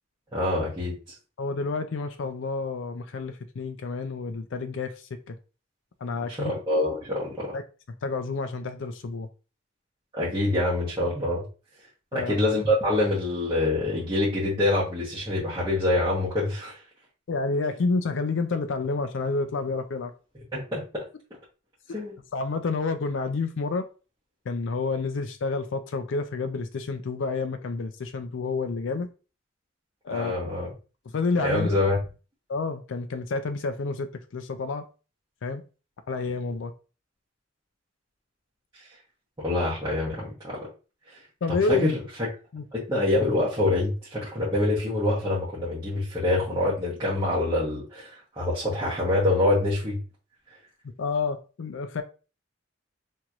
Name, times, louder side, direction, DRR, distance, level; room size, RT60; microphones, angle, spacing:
voice 1, 0.3-0.9 6.3-7.5 10.1-11.4 12.1-16.8 20.5-21.0 21.9-22.1 30.1-30.7 31.4-32.0 39.4-40.7 41.5-42.0 42.7-50.0, left 1 dB, 20° right, 1.1 m, -25 dB
voice 2, 1.4-5.4 6.0-6.5 7.5-7.6 8.0-9.3 12.1-12.4 17.3-20.1 22.3-23.9 24.5-29.1 30.0-30.3 31.1-31.7 32.5-34.9 35.4-35.6 36.1-36.7 41.4-41.9 42.5-42.6 51.0-52.0, left 4 dB, 80° left, 0.4 m, -29 dB
4.4 x 3.0 x 2.4 m
head